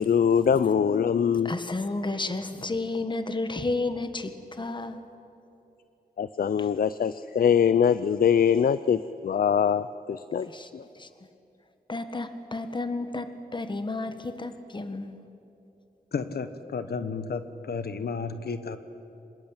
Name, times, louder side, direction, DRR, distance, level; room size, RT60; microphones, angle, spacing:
voice 1, 0.0-1.5 6.2-10.5 10.7-10.8, left 7 dB, 65° left, 15 dB, 0.5 m, -23 dB
voice 2, 1.4-5.0 6.6-6.7 10.5-10.7 11.0-11.1 11.9-15.2, left 2 dB, 30° left, 9 dB, 1.5 m, -32 dB
voice 3, 16.1-18.8, left 5 dB, 80° left, 11 dB, 1.2 m, -32 dB
25.5 x 21.0 x 8.8 m, 2.8 s
wide cardioid pair, 110°, 16 cm